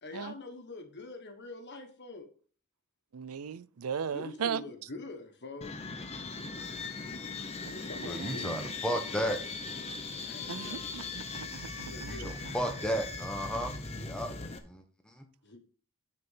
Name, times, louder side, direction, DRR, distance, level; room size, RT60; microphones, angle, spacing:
voice 1, 0.0-2.3 4.1-5.7 7.7-9.4 10.1-11.3 11.6-12.9 15.4-15.6, left 3 dB, 50° left, 1.5 m, -46 dB
voice 2, 3.1-4.6 8.2-8.6 10.5-12.3, right 7 dB, 80° right, 0.5 m, -37 dB
sound 1, 5.6-14.6, left 4 dB, 30° left, 1.0 m, -39 dB
voice 3, 8.0-9.4 12.1-14.3 14.6-15.2, equal, 5° left, 1.2 m, -34 dB
9.8 x 4.4 x 5.6 m
head